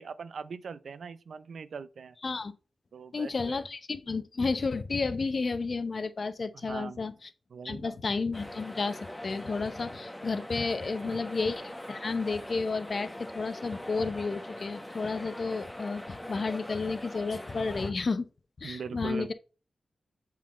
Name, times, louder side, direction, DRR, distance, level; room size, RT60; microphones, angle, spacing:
voice 1, 0.0-2.2 2.9-3.6 6.5-7.1 7.5-8.0 10.9-11.0 18.6-19.3, right 5 dB, 80° right, 0.5 m, -41 dB
voice 2, 3.1-7.1 7.6-18.3 18.6-19.3, left 4 dB, 55° left, 0.7 m, -32 dB
sound 1, 8.3-17.9, left 1 dB, 10° left, 1.0 m, -42 dB
7.3 x 3.8 x 4.2 m
wide cardioid pair, 85°, 0 cm